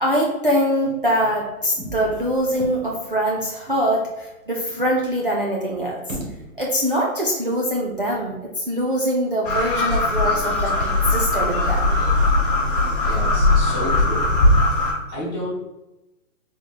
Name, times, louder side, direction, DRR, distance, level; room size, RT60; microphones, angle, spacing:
voice 1, 0.0-6.2 6.6-11.9, equal, 40° right, -3 dB, 0.4 m, -23 dB
sound 1, 1.7-3.3 3.8-3.9 4.1-4.2 4.7-6.7, right 1 dB, 65° right, 1.1 m, -37 dB
sound 2, 9.4-14.9, left 2 dB, 40° left, 1.0 m, -19 dB
voice 2, 13.1-14.3 15.1-15.5, left 1 dB, 15° left, -9 dB, 0.9 m, -30 dB
3.6 x 2.9 x 2.2 m, 0.99 s
hypercardioid pair, 170°, 42 cm